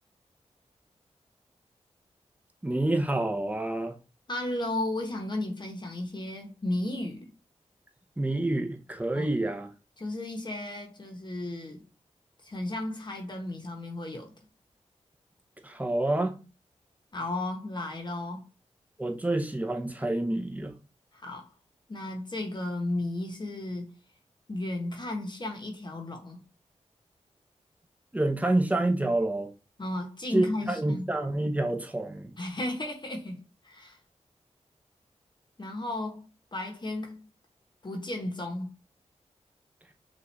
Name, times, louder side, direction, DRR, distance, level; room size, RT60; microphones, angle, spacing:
voice 1, 2.6-4.0 8.2-9.7 15.6-16.4 19.0-20.7 28.1-29.5 30.3-32.3, right 2 dB, 10° right, 0.8 m, -28 dB
voice 2, 4.3-7.3 9.1-9.3 10.0-11.8 12.4-14.3 17.1-18.4 21.1-21.5 21.9-23.9 24.5-26.4 29.8-31.1 32.4-33.4 33.6-34.0 35.6-37.2 37.8-38.7, left 1 dB, 40° left, 1.0 m, -34 dB
5.8 x 2.5 x 3.2 m
wide cardioid pair, 75°, 12 cm